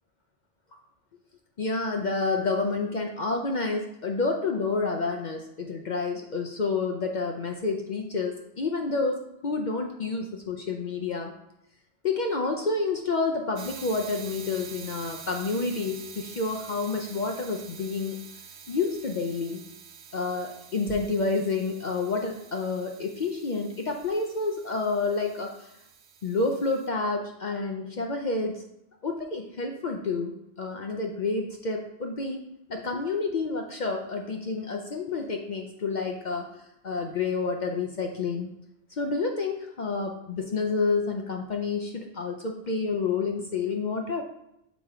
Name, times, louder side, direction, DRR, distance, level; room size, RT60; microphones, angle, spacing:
voice 1, 1.6-9.2 9.4-11.3 12.0-18.2 18.7-19.6 20.1-25.7 26.2-28.6 29.0-32.4 32.7-36.4 36.8-38.5 38.9-44.2, left 4 dB, 50° left, 2 dB, 0.6 m, -29 dB
sound 1, 13.6-26.9, right 6 dB, 75° right, 0.9 m, -46 dB
7.1 x 3.0 x 4.8 m, 0.82 s
omnidirectional pair, 1.1 m